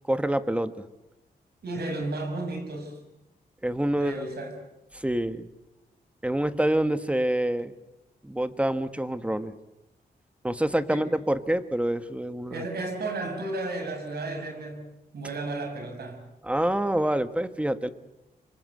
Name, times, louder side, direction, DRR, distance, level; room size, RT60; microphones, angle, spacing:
voice 1, 0.1-0.8 3.6-4.2 4.9-5.5 6.2-7.7 8.2-9.5 10.4-12.6 16.4-17.9, right 1 dB, 5° right, 11 dB, 1.5 m, -26 dB
voice 2, 1.6-3.0 4.0-4.6 10.9-11.1 12.5-14.9 15.1-16.3, right 2 dB, 75° right, 5 dB, 6.5 m, -33 dB
26.0 x 24.5 x 8.0 m, 0.95 s
wide cardioid pair, 105°, 17 cm